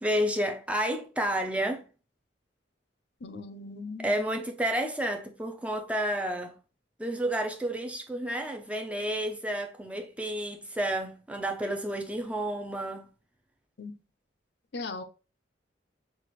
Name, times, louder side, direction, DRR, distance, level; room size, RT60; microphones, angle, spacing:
voice 1, 0.0-1.8 4.0-6.6 7.0-13.1, right 1 dB, 5° right, 0.5 m, -30 dB
voice 2, 3.2-4.2 13.8-13.9 14.7-15.0, left 3 dB, 60° left, 0.6 m, -38 dB
5.8 x 2.5 x 3.0 m
head